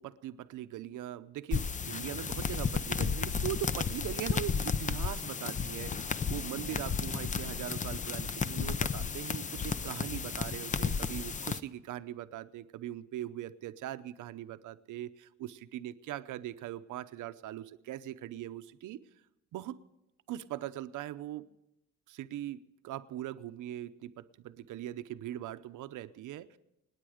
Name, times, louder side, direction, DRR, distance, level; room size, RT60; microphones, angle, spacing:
voice 1, 0.0-19.0 19.5-19.8 20.3-21.5 22.1-26.6, right 13 dB, 75° right, 12 dB, 0.8 m, -41 dB
sound 1, 1.5-11.6, left 5 dB, 25° left, 0.5 m, -33 dB
26.5 x 9.7 x 5.0 m, 0.89 s
cardioid pair, 120°, 31 cm